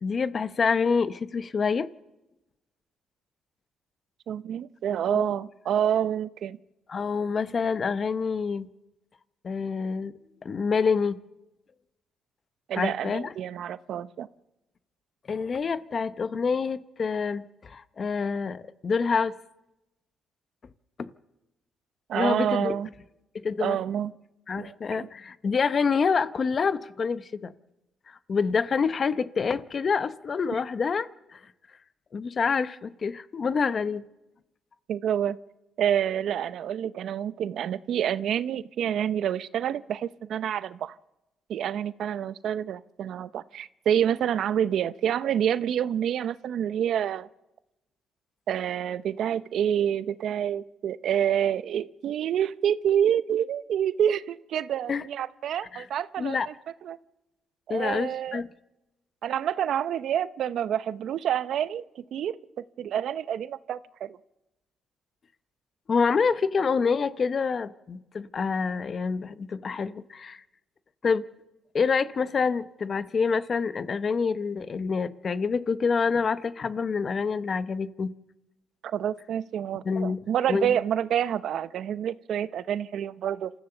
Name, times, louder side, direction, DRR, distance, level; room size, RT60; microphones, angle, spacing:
voice 1, 0.0-1.9 5.1-5.3 6.9-8.7 9.4-10.1 10.4-11.2 12.8-13.3 15.3-19.3 21.0-21.1 22.1-22.8 23.4-23.8 24.5-27.5 28.1-31.4 32.1-34.0 54.9-55.0 55.7-55.8 56.2-56.5 57.7-58.5 65.9-70.4 71.0-71.2 71.7-78.1 79.8-80.2 80.5-80.7, left 5 dB, 45° left, 14 dB, 0.8 m, -27 dB
voice 2, 4.3-6.6 12.7-14.3 22.1-22.9 23.6-24.1 24.6-25.1 34.9-35.4 35.8-40.9 41.5-47.3 48.5-56.5 56.8-57.0 57.7-58.4 59.2-64.2 78.8-83.5, right 9 dB, 70° right, 15 dB, 0.7 m, -28 dB
27.5 x 14.5 x 6.9 m, 0.97 s
cardioid pair, 90°, 0 cm